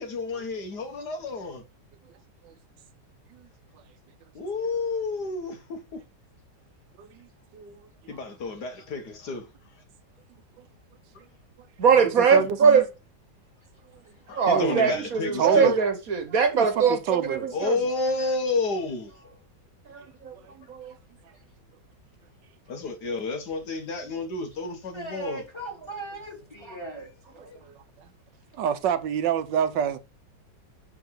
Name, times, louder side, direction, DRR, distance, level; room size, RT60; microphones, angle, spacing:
voice 1, 0.0-1.6 4.3-6.0 8.1-9.5 11.2-11.3 12.4-12.5 14.3-15.7 17.5-19.1 22.7-25.4 27.3-27.6, left 3 dB, 70° left, 1.8 m, -30 dB
voice 2, 7.5-8.2 10.6-10.7 11.6-11.7 12.0-12.8 13.9-14.0 14.4-15.0 15.4-15.8 16.5-17.5 20.4-20.5 27.3-27.8 28.5-30.0, right 9 dB, 85° right, 1.5 m, -28 dB
voice 3, 11.8-12.8 14.4-17.7 19.9-20.3 20.7-20.9, right 6 dB, 55° right, 1.5 m, -21 dB
voice 4, 24.9-27.1, right 2 dB, 15° left, 2.7 m, -38 dB
11.0 x 3.8 x 4.6 m
omnidirectional pair, 1.9 m